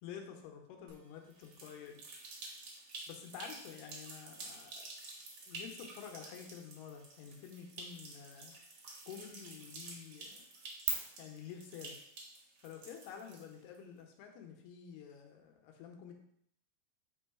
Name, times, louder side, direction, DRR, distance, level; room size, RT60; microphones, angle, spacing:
voice 1, 0.0-2.0 3.1-4.9 5.5-8.6 9.1-10.5 11.2-11.9 12.6-16.1, left 8 dB, 90° left, 3 dB, 2.9 m, -49 dB
sound 1, 0.9-10.9, right 11 dB, 85° right, 3.4 m, -50 dB
sound 2, 1.3-13.8, right 3 dB, 70° right, 1.3 m, -50 dB
8.7 x 3.1 x 4.7 m, 0.71 s
omnidirectional pair, 4.5 m